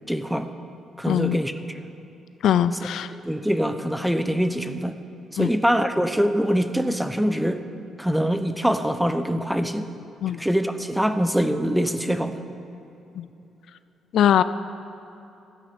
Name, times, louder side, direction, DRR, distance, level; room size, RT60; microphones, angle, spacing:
voice 1, 0.1-0.5 1.0-1.5 3.2-5.0 5.3-7.6 8.0-9.9 10.4-12.4, equal, 5° right, 10 dB, 0.8 m, -23 dB
voice 2, 1.1-1.4 2.4-3.1 5.4-5.5 10.2-10.4 13.2-13.3 14.1-14.4, left 10 dB, 75° left, 14 dB, 0.4 m, -21 dB
13.5 x 10.0 x 6.8 m, 2.9 s
cardioid pair, 90°, 0 cm